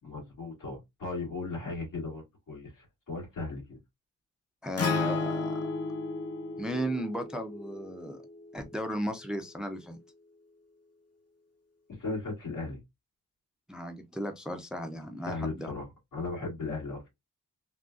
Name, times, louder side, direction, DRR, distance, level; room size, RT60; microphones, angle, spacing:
voice 1, 0.0-3.8 11.9-12.8 15.3-15.8 16.1-17.1, left 3 dB, 75° left, 2.1 m, -37 dB
voice 2, 4.6-5.6 6.6-8.2 8.5-10.0 13.7-15.7, equal, ahead, 0.5 m, -35 dB
Acoustic guitar, 4.8-9.0, left 3 dB, 50° left, 0.8 m, -34 dB
3.6 x 2.3 x 2.4 m
wide cardioid pair, 95°, 32 cm